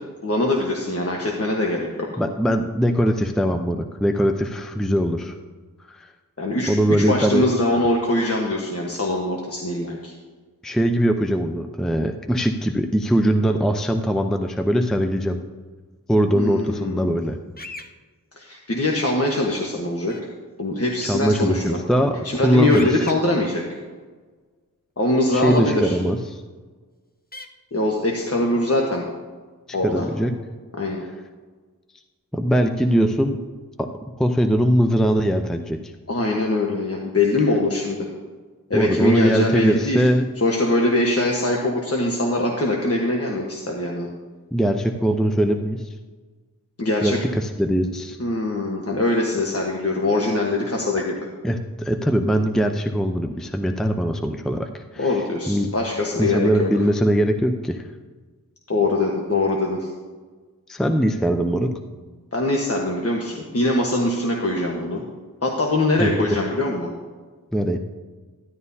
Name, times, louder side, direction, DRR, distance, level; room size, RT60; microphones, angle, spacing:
voice 1, 0.2-2.2 6.4-10.1 16.3-17.1 18.3-20.3 20.6-21.8 22.2-23.8 25.0-26.0 27.7-29.0 29.7-30.0 30.8-31.0 36.1-38.1 38.7-40.1 40.4-44.1 46.8-47.2 48.2-51.1 55.0-56.7 58.7-59.9 62.3-65.0 65.4-66.9, left 2 dB, 40° left, -1 dB, 1.3 m, -22 dB
voice 2, 2.2-5.4 5.9-6.1 6.7-7.5 10.6-15.4 16.1-17.4 21.0-23.0 25.3-26.4 29.8-30.3 32.3-33.4 33.8-33.9 34.2-35.9 38.7-40.3 44.5-45.9 47.0-48.2 51.4-55.2 55.5-55.7 56.2-57.8 60.7-61.7 66.0-66.4 67.5-67.8, equal, ahead, 5 dB, 0.6 m, -21 dB
sound 1, 17.6-17.9 20.1-20.2 22.7-23.1 25.5-25.6 27.3-27.5, left 2 dB, 25° left, 0.9 m, -37 dB
13.0 x 11.0 x 2.8 m, 1.4 s
cardioid pair, 45°, 35 cm